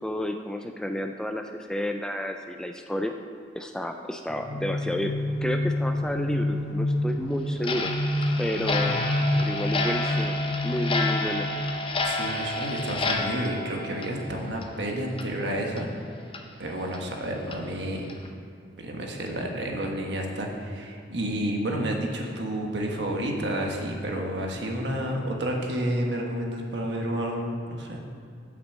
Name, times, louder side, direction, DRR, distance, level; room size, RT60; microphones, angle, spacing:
voice 1, 0.0-3.1 3.5-5.1 5.4-7.9 8.4-9.0 9.4-10.4 10.6-11.5 12.0-12.2, left 1 dB, 5° left, 5 dB, 0.3 m, -31 dB
sound 1, 4.3-12.2, left 1 dB, 70° left, 0.8 m, -28 dB
Clock, 7.6-14.8 15.1-15.3 15.8-15.9 16.3-16.4 16.9-17.0 17.5-17.6 18.1-18.3, left 3 dB, 30° left, 0.7 m, -30 dB
voice 2, 12.0-15.9 16.6-18.1 18.8-28.0, right 1 dB, 70° right, 1 dB, 1.4 m, -30 dB
8.2 x 6.2 x 7.3 m, 2.3 s
head